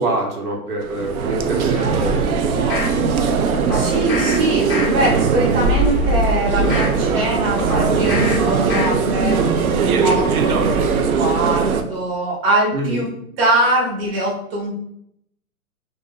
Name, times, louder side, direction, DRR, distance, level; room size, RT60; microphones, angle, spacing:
voice 1, 0.0-3.0 12.7-13.0, right 2 dB, 85° right, 0 dB, 1.0 m, -25 dB
sound 1, 0.8-11.8, right 5 dB, 70° right, 0.5 m, -19 dB
sound 2, 1.7-3.0 3.7-4.4 4.7-5.2 5.6-7.0 7.7-8.4 8.7-9.2 9.6-9.7, left 2 dB, 15° left, 0.6 m, -28 dB
voice 2, 3.7-9.4 10.0-13.1 13.4-14.8, right 1 dB, 40° right, -2 dB, 0.8 m, -22 dB
2.5 x 2.1 x 3.5 m, 0.73 s
hypercardioid pair, 150°, 45 cm